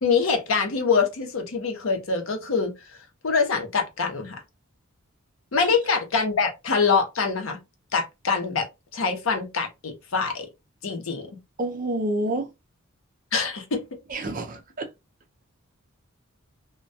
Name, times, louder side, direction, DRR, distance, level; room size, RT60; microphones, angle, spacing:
voice 1, 0.0-2.7 3.2-4.3 5.5-7.6 7.9-8.7 8.9-10.5 10.8-11.3 13.3-13.8, left 5 dB, 70° left, 0.7 m, -24 dB
voice 2, 11.6-12.5 14.1-14.9, right 1 dB, 40° right, 0.5 m, -28 dB
2.1 x 2.1 x 2.6 m
head